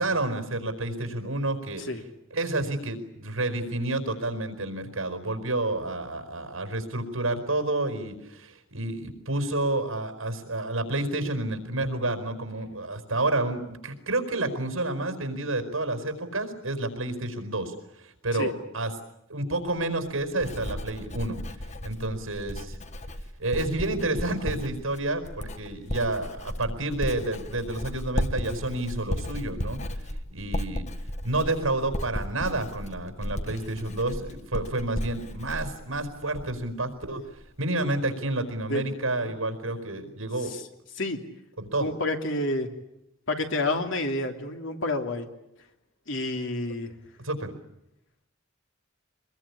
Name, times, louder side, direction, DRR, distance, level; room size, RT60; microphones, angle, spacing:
voice 1, 0.0-1.8 2.3-18.9 19.3-21.4 21.8-22.7 23.4-29.8 30.3-30.9 31.2-37.2 37.6-40.5 41.6-41.9 47.2-47.5, right 2 dB, 80° right, 8 dB, 4.8 m, -29 dB
Writing, 19.7-36.7 37.0-37.5, left 1 dB, 35° left, 1.5 m, -35 dB
voice 2, 41.8-42.7 43.3-45.3 46.1-46.9, left 2 dB, 65° left, 5 dB, 3.1 m, -29 dB
24.0 x 21.5 x 9.8 m, 0.84 s
head